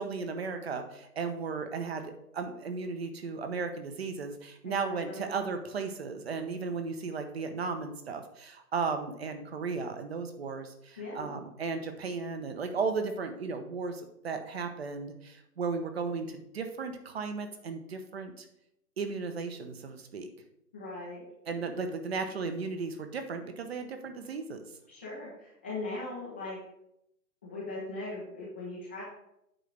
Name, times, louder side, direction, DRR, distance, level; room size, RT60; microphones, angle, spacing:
voice 1, 0.0-18.5 19.0-20.3 21.5-24.6, right 4 dB, 40° right, 7 dB, 1.0 m, -35 dB
voice 2, 4.6-5.3 11.0-11.3 20.7-21.2 24.9-26.6 27.4-29.0, left 2 dB, 10° left, -8 dB, 0.6 m, -39 dB
9.1 x 3.8 x 6.5 m, 0.79 s
figure-of-eight pair, 135°, 48 cm